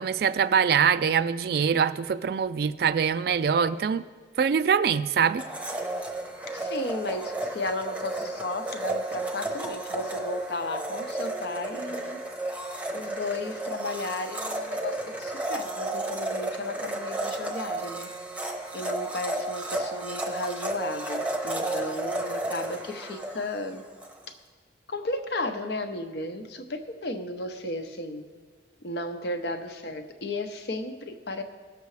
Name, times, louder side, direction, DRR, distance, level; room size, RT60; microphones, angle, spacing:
voice 1, 0.0-4.0 4.4-5.4, right 7 dB, 60° right, 14 dB, 0.3 m, -23 dB
Domestic sounds home sounds, 5.4-24.2, right 2 dB, 10° right, 0.7 m, -33 dB
voice 2, 6.5-12.2 12.9-18.1 18.7-23.8 24.3-24.4 24.9-28.2 28.8-31.4, left 2 dB, 70° left, 7 dB, 0.8 m, -34 dB
17.0 x 6.7 x 3.2 m, 1.5 s
head